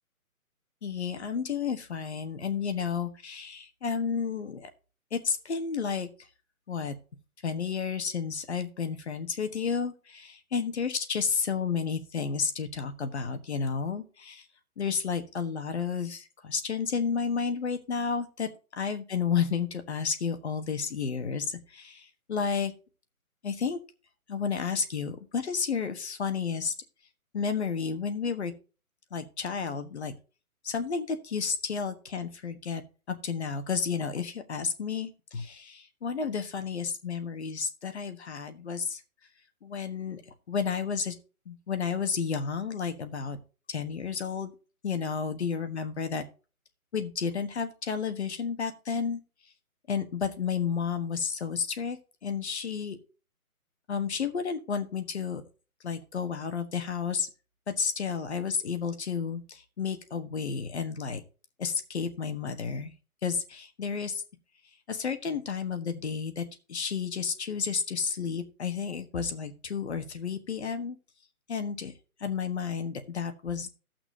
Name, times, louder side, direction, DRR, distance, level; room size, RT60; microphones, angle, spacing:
voice 1, 0.8-4.7 5.1-6.1 6.7-6.9 7.4-14.4 14.8-18.5 18.8-22.7 23.4-23.8 24.3-26.7 27.3-28.5 29.1-30.1 30.6-32.8 33.1-39.0 39.6-40.2 40.5-41.1 41.5-43.4 43.7-44.5 44.8-46.2 46.9-49.2 49.9-53.0 53.9-55.4 55.8-57.3 57.8-61.2 61.6-62.9 63.2-64.2 64.9-71.0 71.5-71.9 72.2-73.7, left 6 dB, 50° left, 8 dB, 1.4 m, -31 dB
16.0 x 6.0 x 2.8 m, 0.34 s
hypercardioid pair, 165°, 43 cm